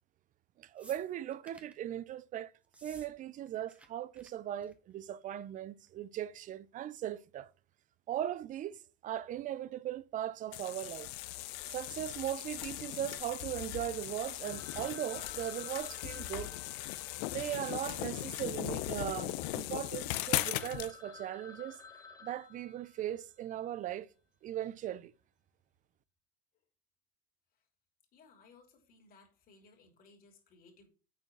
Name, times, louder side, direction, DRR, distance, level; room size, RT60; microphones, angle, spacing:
voice 1, 0.6-2.5 2.8-7.5 8.1-8.8 9.0-11.1 11.7-16.6 17.3-21.8 22.2-24.1 24.4-25.1, right 11 dB, 40° right, 0.5 m, -38 dB
sound 1, 0.8-1.8 2.6-3.1 3.4-3.9 4.1-4.3 4.6-4.9 5.9-6.0, right 1 dB, 5° right, 1.1 m, -56 dB
sound 2, 10.5-20.9, left 16 dB, 70° left, 0.6 m, -38 dB
Telephone, 14.4-18.8 19.0-19.1 19.7-19.8 20.1-20.2 20.4-23.4, left 4 dB, 15° left, 1.0 m, -54 dB
voice 2, 28.1-30.9, left 4 dB, 45° left, 3.0 m, -61 dB
6.8 x 4.4 x 6.0 m
supercardioid pair, 105°, 21 cm